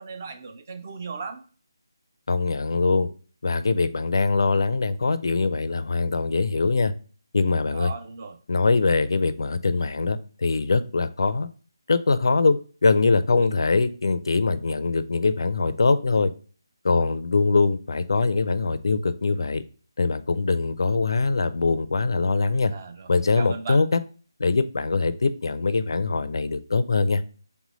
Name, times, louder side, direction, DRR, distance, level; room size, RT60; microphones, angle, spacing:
voice 1, 0.0-1.4 7.7-8.4 13.4-13.5 22.7-23.8, right 5 dB, 30° right, 7 dB, 0.4 m, -37 dB
voice 2, 2.3-3.1 3.4-6.9 7.3-7.9 8.5-11.5 11.9-16.3 16.8-19.6 20.0-22.7 23.1-24.0 24.4-27.2, left 3 dB, 65° left, 13 dB, 0.4 m, -22 dB
3.4 x 3.1 x 3.8 m, 0.40 s
figure-of-eight pair, 170°, 2 cm